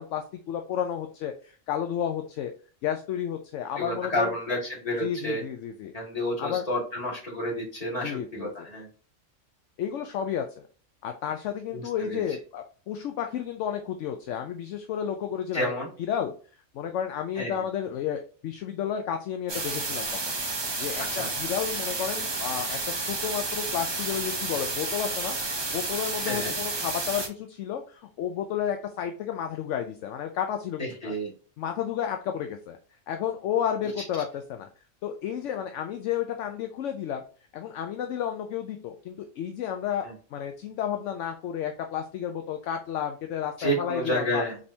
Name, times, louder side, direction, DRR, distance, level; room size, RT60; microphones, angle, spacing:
voice 1, 0.0-2.5 2.8-4.3 5.0-5.9 6.4-6.7 8.0-8.7 9.8-10.6 11.0-15.7 16.0-16.3 16.7-31.1 31.6-32.8 33.1-34.7 35.0-37.2 37.5-44.4, left 9 dB, 75° left, 5 dB, 0.9 m, -32 dB
voice 2, 3.8-5.4 5.9-8.9 11.7-12.2 15.5-15.9 17.4-17.5 21.1-21.3 26.2-26.5 30.8-31.3 40.0-40.1 43.6-44.6, equal, 30° left, -6 dB, 2.4 m, -30 dB
sound 1, 19.5-27.3, right 3 dB, 25° right, 0.6 m, -31 dB
5.2 x 3.4 x 2.7 m, 0.40 s
omnidirectional pair, 1.3 m